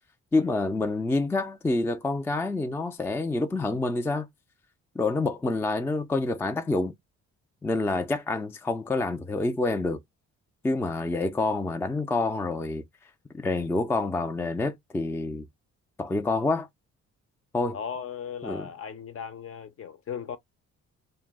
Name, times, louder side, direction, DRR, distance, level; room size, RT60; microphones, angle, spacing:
voice 1, 0.3-4.3 5.0-6.9 7.6-10.0 10.6-12.8 13.3-15.5 16.0-16.7 17.5-17.8 18.4-18.7, left 2 dB, 10° left, 0.4 m, -27 dB
voice 2, 17.7-20.4, left 7 dB, 50° left, 0.6 m, -37 dB
2.4 x 2.0 x 3.4 m
cardioid pair, 90°, 30 cm